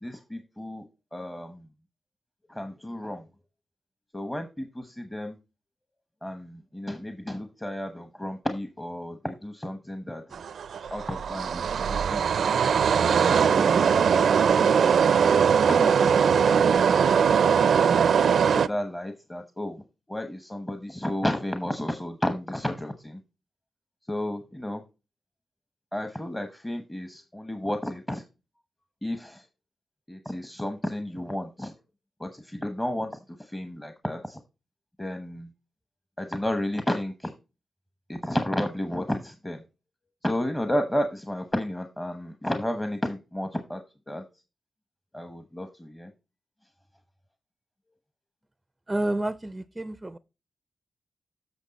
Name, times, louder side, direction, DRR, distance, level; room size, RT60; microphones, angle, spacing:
voice 1, 0.0-0.8 1.1-1.7 2.5-3.3 4.1-5.4 6.2-10.2 10.9-12.2 13.1-14.9 15.7-17.1 18.4-19.8 20.1-23.2 24.1-24.8 25.9-28.2 29.0-29.5 30.1-31.7 32.2-34.4 35.0-35.5 36.2-37.3 38.1-39.6 40.2-43.8 44.1-44.2 45.1-46.1, left 1 dB, 15° left, 1.0 m, -32 dB
sound 1, 10.3-18.7, right 7 dB, 80° right, 0.4 m, -21 dB
voice 2, 48.9-50.2, right 1 dB, 20° right, 0.4 m, -29 dB
8.2 x 6.3 x 4.1 m
cardioid pair, 65°, 0 cm